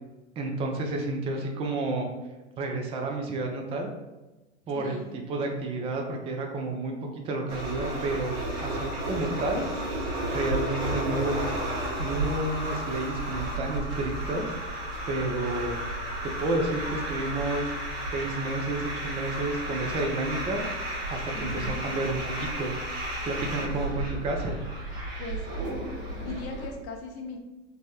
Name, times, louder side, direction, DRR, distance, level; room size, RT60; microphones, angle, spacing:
voice 1, 0.4-2.1 2.6-3.9 4.7-5.0 5.3-6.9 7.2-9.7 10.3-11.3 12.0-14.5 15.1-15.8 16.2-17.7 18.1-20.7 21.1-22.7 23.2-24.6, right 2 dB, 15° right, 2 dB, 0.3 m, -30 dB
voice 2, 4.7-5.1 21.3-21.8 23.6-24.0 25.2-25.4 26.0-27.4, left 3 dB, 40° left, 3 dB, 0.5 m, -40 dB
sound 1, 7.5-26.7, right 1 dB, 55° right, 1.1 m, -33 dB
3.2 x 2.0 x 2.8 m, 1.1 s
figure-of-eight pair, 80°, 36 cm